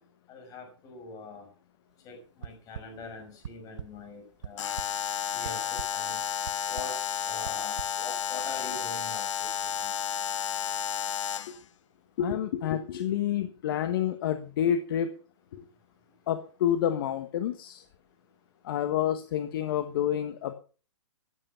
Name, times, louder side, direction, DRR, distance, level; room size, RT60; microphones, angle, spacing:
voice 1, 0.3-1.5 2.0-4.7 5.3-6.2 6.7-9.9, left 3 dB, 20° left, 5.9 m, -43 dB
sound 1, 2.4-2.8 3.4-3.9 4.3-4.9 5.4-5.9 6.5-6.9 7.4-7.9, right 9 dB, 70° right, 0.8 m, -39 dB
Alarm, 4.6-11.6, left 9 dB, 75° left, 0.6 m, -32 dB
voice 2, 12.2-15.1 15.5-15.6 16.3-17.8 18.6-20.5, left 10 dB, 45° left, 1.3 m, -28 dB
15.0 x 9.8 x 5.7 m
hypercardioid pair, 155°, 16 cm